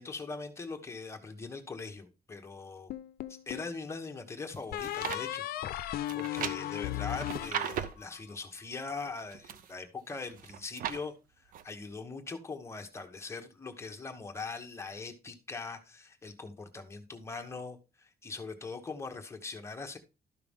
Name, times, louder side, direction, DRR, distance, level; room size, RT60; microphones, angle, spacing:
voice 1, 0.0-2.9 3.3-5.4 6.1-20.0, left 4 dB, 15° left, 4 dB, 1.1 m, -41 dB
sound 1, 2.9-3.8 4.7-8.2, left 13 dB, 70° left, 0.6 m, -36 dB
sound 2, 4.5-5.2 6.1-8.1 9.0-9.7 10.2-11.0 11.5-11.6, right 9 dB, 60° right, 0.7 m, -37 dB
12.5 x 5.8 x 3.6 m, 0.30 s
cardioid pair, 175°, 16 cm